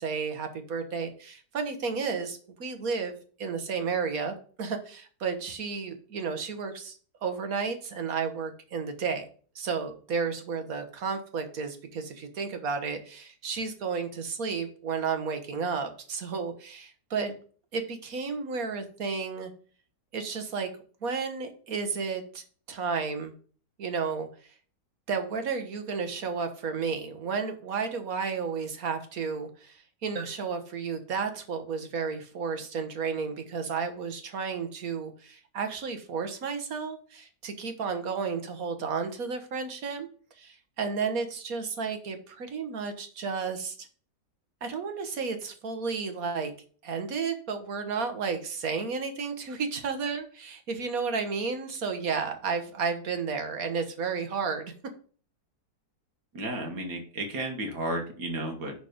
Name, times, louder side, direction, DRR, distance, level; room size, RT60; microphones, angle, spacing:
voice 1, 0.0-6.9 7.2-9.2 9.5-17.3 17.7-19.5 20.1-20.7 21.0-23.3 23.8-24.3 25.1-40.1 40.4-43.9 44.6-46.5 46.8-54.7, right 5 dB, 60° right, 7 dB, 1.6 m, -32 dB
voice 2, 56.3-58.7, right 1 dB, 75° right, 2 dB, 2.0 m, -33 dB
10.5 x 4.1 x 5.1 m, 0.43 s
omnidirectional pair, 1.8 m